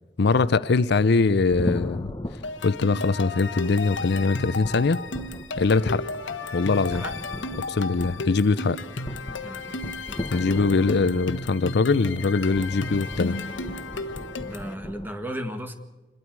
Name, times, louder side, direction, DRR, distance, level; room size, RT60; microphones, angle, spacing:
voice 1, 0.2-2.1 2.6-5.0 5.6-6.0 6.5-7.0 7.7-8.8 10.3-13.4, left 4 dB, 65° left, 0.6 m, -22 dB
sound 1, 1.4-15.1, left 1 dB, 20° left, 1.0 m, -38 dB
sound 2, 2.4-14.7, left 3 dB, 85° left, 1.2 m, -34 dB
voice 2, 6.9-7.2 9.4-9.8 14.4-15.7, equal, 10° right, 1.8 m, -35 dB
27.0 x 21.5 x 4.7 m
head